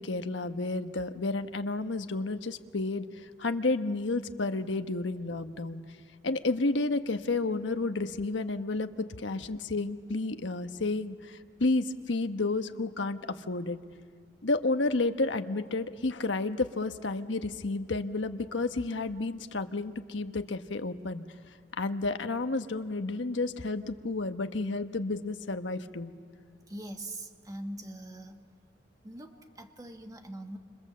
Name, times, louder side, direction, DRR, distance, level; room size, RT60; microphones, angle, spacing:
voice 1, 0.0-5.8 6.2-13.2 13.5-13.8 14.4-21.2 21.7-26.1, left 3 dB, 90° left, 8 dB, 1.1 m, -31 dB
voice 2, 26.7-28.4 29.0-30.6, right 1 dB, 20° right, 5 dB, 1.5 m, -42 dB
29.0 x 27.0 x 7.6 m, 2.2 s
head